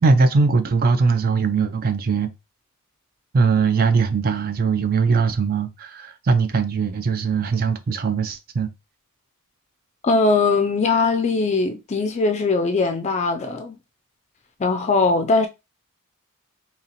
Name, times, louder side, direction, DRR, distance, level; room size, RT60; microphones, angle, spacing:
voice 1, 0.0-2.3 3.3-8.7, right 4 dB, 45° right, 0.4 m, -20 dB
voice 2, 10.0-13.8 14.6-15.5, left 3 dB, 30° left, 0.4 m, -20 dB
2.9 x 2.8 x 4.0 m
head